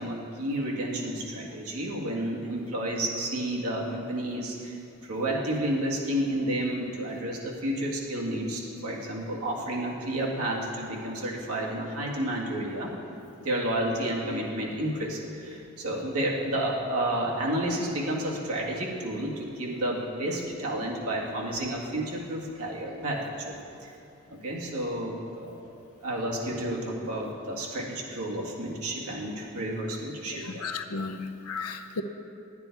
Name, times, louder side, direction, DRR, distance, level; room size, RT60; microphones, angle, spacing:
voice 1, 0.0-12.9 13.4-23.9 24.3-25.7 26.0-30.7, right 1 dB, 85° right, -3 dB, 1.9 m, -31 dB
voice 2, 30.3-32.0, left 4 dB, 90° left, 7 dB, 0.7 m, -34 dB
11.0 x 9.5 x 4.6 m, 2.6 s
head